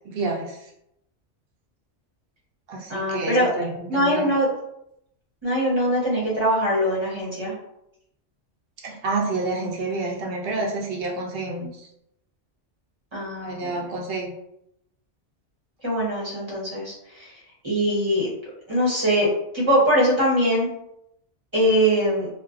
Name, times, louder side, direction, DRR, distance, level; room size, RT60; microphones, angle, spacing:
voice 1, 0.0-0.6 2.7-4.3 8.8-11.9 13.4-14.3, right 3 dB, 60° right, -1 dB, 0.7 m, -29 dB
voice 2, 2.9-3.5 3.9-4.5 5.4-7.5 13.1-13.8 15.8-17.3 17.6-19.3 19.5-20.7 21.5-22.3, equal, 30° right, -5 dB, 0.7 m, -22 dB
2.4 x 2.2 x 2.4 m, 0.79 s
omnidirectional pair, 1.2 m